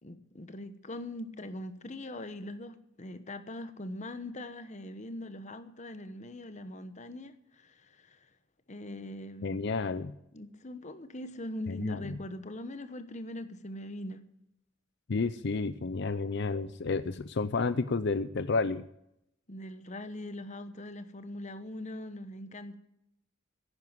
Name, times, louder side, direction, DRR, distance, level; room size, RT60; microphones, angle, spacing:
voice 1, 0.0-8.2 8.7-9.6 10.3-14.2 19.5-22.7, left 1 dB, 35° left, 11 dB, 1.1 m, -41 dB
voice 2, 9.4-10.1 11.7-12.2 15.1-18.8, left 4 dB, 55° left, 13 dB, 0.6 m, -31 dB
11.0 x 9.6 x 9.5 m, 0.80 s
head